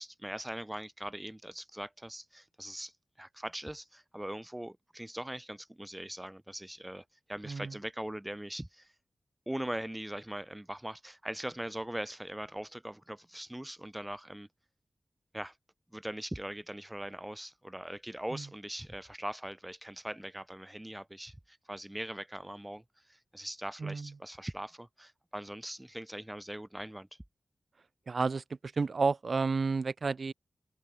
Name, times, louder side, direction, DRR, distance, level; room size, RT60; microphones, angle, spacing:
voice 1, 0.0-2.9 3.2-8.9 9.5-14.5 15.3-15.6 15.9-27.1, right 1 dB, 10° right, 4.2 m, -41 dB
voice 2, 23.8-24.1 28.1-30.3, right 4 dB, 55° right, 6.0 m, -31 dB
wide cardioid pair, 85°, 0 cm